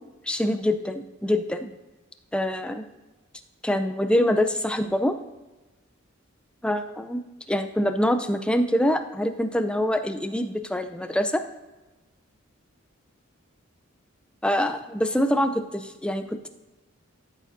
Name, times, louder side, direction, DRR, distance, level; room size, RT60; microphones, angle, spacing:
voice 1, 0.3-1.7 2.3-2.8 3.6-5.1 6.6-7.2 7.5-11.4 14.4-16.5, left 1 dB, 5° left, 8 dB, 0.4 m, -25 dB
13.0 x 5.0 x 2.6 m, 1.1 s
head